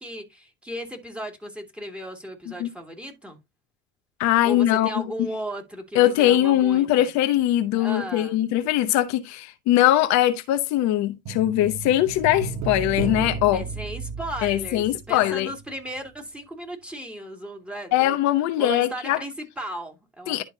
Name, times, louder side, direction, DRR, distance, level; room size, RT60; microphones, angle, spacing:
voice 1, 0.0-3.4 4.4-7.1 7.7-8.4 13.5-18.2 18.6-20.4, equal, 5° right, 2.7 m, -36 dB
voice 2, 4.2-4.9 5.9-13.6 14.4-15.5 17.9-19.2 20.3-20.4, left 13 dB, 65° left, 0.9 m, -21 dB
sound 1, 11.3-15.7 16.0-16.1, right 5 dB, 60° right, 1.3 m, -33 dB
11.5 x 4.2 x 2.8 m
hypercardioid pair, 75°, 30 cm